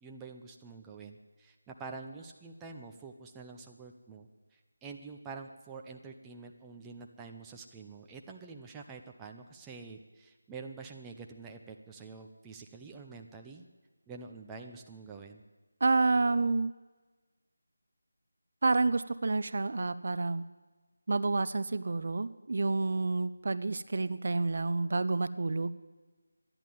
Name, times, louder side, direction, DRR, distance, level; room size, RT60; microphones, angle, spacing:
voice 1, 0.0-13.7 14.1-15.4, right 4 dB, 10° right, 2 dB, 0.6 m, -47 dB
voice 2, 15.8-16.7 18.6-20.4 21.1-25.7, right 3 dB, 50° right, 14 dB, 0.6 m, -29 dB
13.0 x 10.5 x 9.2 m, 1.3 s
figure-of-eight pair, 170°, 0 cm